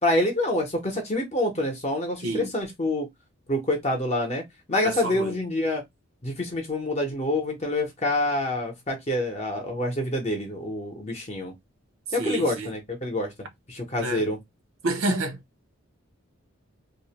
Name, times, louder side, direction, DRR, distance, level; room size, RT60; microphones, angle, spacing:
voice 1, 0.0-3.1 3.5-4.4 4.7-5.8 6.2-11.5 12.1-13.3 13.7-14.4, left 1 dB, 30° left, 0.7 m, -27 dB
voice 2, 4.8-5.4 12.2-12.7 14.0-14.2 14.8-15.4, right 2 dB, 75° right, 0.6 m, -28 dB
2.4 x 2.1 x 2.8 m
head